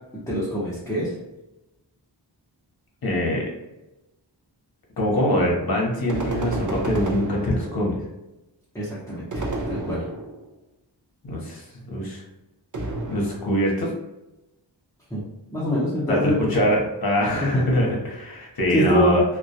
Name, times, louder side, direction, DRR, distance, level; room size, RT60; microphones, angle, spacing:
voice 1, 0.3-1.1 8.7-10.0 15.1-15.2 15.5-16.7 17.4-17.6 18.7-19.2, equal, 5° left, -9 dB, 0.7 m, -24 dB
voice 2, 3.0-3.4 5.0-8.0 11.2-12.2 13.1-13.9 16.1-19.2, equal, 55° left, -2 dB, 0.8 m, -24 dB
sound 1, 6.1-8.1 9.3-10.5 12.7-13.7, right 2 dB, 45° right, 0.5 m, -30 dB
2.2 x 2.2 x 2.6 m, 0.97 s
wide cardioid pair, 55°, 44 cm